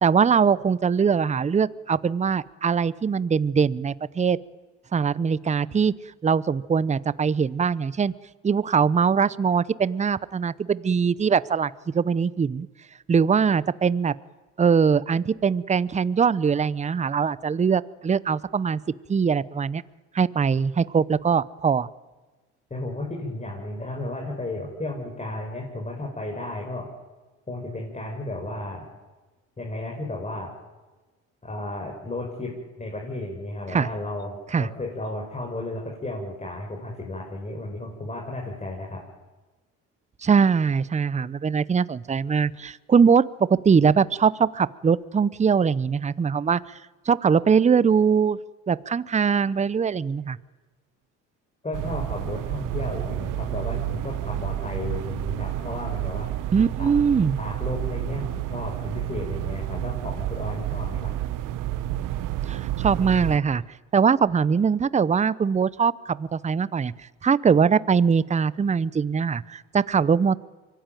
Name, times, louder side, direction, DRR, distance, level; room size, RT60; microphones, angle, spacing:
voice 1, 0.0-4.4 4.9-6.0 6.2-8.1 8.4-12.7 13.1-14.1 14.6-18.8 19.1-19.8 20.1-21.9 33.7-33.9 34.5-34.7 40.2-46.6 47.1-48.4 48.7-50.4 56.5-57.4 62.5-63.6 63.9-66.9 67.2-70.4, right 6 dB, 20° right, 19 dB, 0.7 m, -22 dB
voice 2, 22.7-26.9 27.5-28.9 29.6-30.5 31.4-32.5 32.8-39.0 51.6-56.3 56.8-56.9 57.4-61.1, left 2 dB, 20° left, -1 dB, 5.8 m, -33 dB
sound 1, 51.7-63.4, right 13 dB, 65° right, 1.3 m, -30 dB
24.5 x 17.5 x 9.2 m, 1.2 s
supercardioid pair, 80°, 34 cm